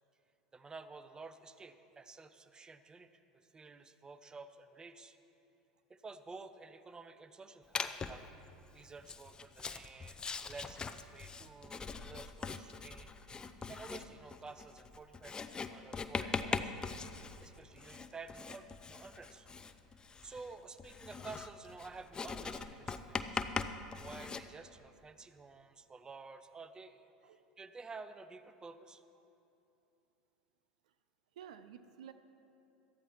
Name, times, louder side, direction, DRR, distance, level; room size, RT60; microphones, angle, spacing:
voice 1, 0.5-5.2 5.9-8.2 8.7-10.2 10.5-13.4 13.7-16.8 17.4-19.5 20.2-29.0, right 4 dB, 20° right, 11 dB, 0.7 m, -51 dB
Writing, 7.7-8.3 9.0-24.4, left 4 dB, 20° left, 0.6 m, -41 dB
voice 2, 31.4-32.1, right 9 dB, 75° right, 11 dB, 0.5 m, -52 dB
18.0 x 13.0 x 3.1 m, 2.8 s
hypercardioid pair, 80°, 4 cm